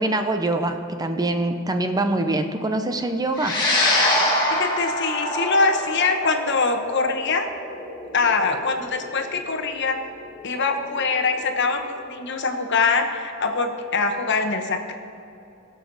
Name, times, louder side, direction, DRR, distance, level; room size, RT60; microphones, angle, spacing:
voice 1, 0.0-3.6, right 2 dB, 20° right, 7 dB, 0.6 m, -24 dB
sound 1, 3.4-11.9, left 1 dB, 20° left, 2.3 m, -26 dB
voice 2, 4.5-7.5 8.1-10.0 10.4-14.9, left 4 dB, 60° left, 5 dB, 1.1 m, -23 dB
20.5 x 7.1 x 4.0 m, 2.7 s
head